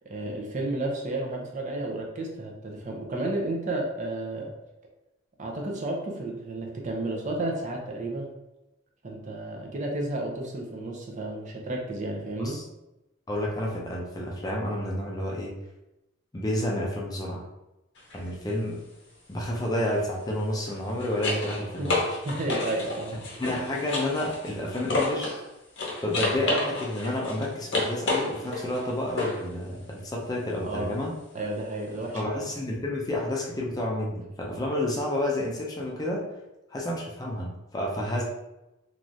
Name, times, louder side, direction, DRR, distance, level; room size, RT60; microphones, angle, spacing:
voice 1, 0.1-4.5 5.4-8.3 9.0-12.6 21.8-21.9 22.2-23.2 23.4-23.5 30.6-31.0 31.3-32.5, right 2 dB, 35° right, 0 dB, 0.5 m, -32 dB
voice 2, 13.3-15.5 16.3-17.5 18.1-18.8 19.3-22.2 23.4-25.3 26.0-31.1 32.1-36.3 36.7-38.2, left 1 dB, 20° left, -2 dB, 0.4 m, -30 dB
sound 1, 18.0-18.2 20.5-25.4 25.8-29.5 32.2-32.3, left 2 dB, 60° left, 0.7 m, -31 dB
3.1 x 2.4 x 2.6 m, 0.95 s
head